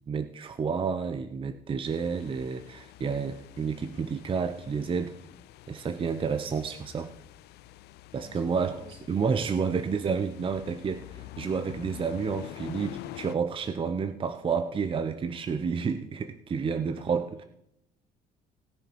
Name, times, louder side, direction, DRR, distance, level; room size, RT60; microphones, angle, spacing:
voice 1, 0.1-5.2 5.7-7.1 8.1-8.7 9.1-17.4, right 5 dB, 30° right, 9 dB, 0.7 m, -30 dB
sound 1, 1.8-13.4, left 16 dB, 75° left, 0.5 m, -47 dB
voice 2, 8.1-9.0 9.4-9.8, right 2 dB, 75° right, 1 dB, 3.3 m, -48 dB
18.0 x 6.6 x 4.6 m, 0.77 s
cardioid pair, 110°, 17 cm